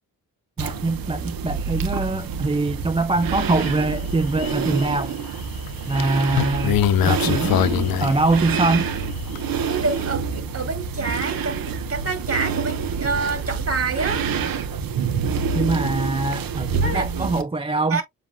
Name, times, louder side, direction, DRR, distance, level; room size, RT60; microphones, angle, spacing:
voice 1, 0.6-5.2 5.9-8.9 15.5-18.0, right 2 dB, 15° right, 0.5 m, -23 dB
sound 1, 0.6-17.4, right 6 dB, 75° right, 1.0 m, -27 dB
sound 2, 3.6-3.7 4.1-4.9 5.7-8.9 9.3-9.4, left 10 dB, 80° left, 0.6 m, -22 dB
voice 2, 9.7-14.3 16.8-17.3 17.9-18.0, right 4 dB, 40° right, 2.3 m, -27 dB
7.2 x 3.1 x 2.4 m
cardioid pair, 70°, 35 cm